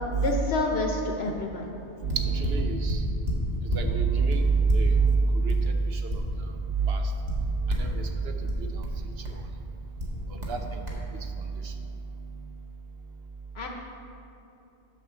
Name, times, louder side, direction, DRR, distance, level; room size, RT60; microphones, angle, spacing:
voice 1, 0.2-1.7 13.5-13.7, left 2 dB, 60° left, 1 dB, 1.0 m, -28 dB
voice 2, 2.0-3.1 3.4-13.0, right 4 dB, 65° right, 5 dB, 0.9 m, -28 dB
sound 1, 2.1-3.9 4.3-6.6 6.9-8.0 8.5-9.5 10.0-10.6 10.9-11.0, equal, 35° right, 1.6 m, -31 dB
9.9 x 4.4 x 6.8 m, 2.8 s
omnidirectional pair, 1.2 m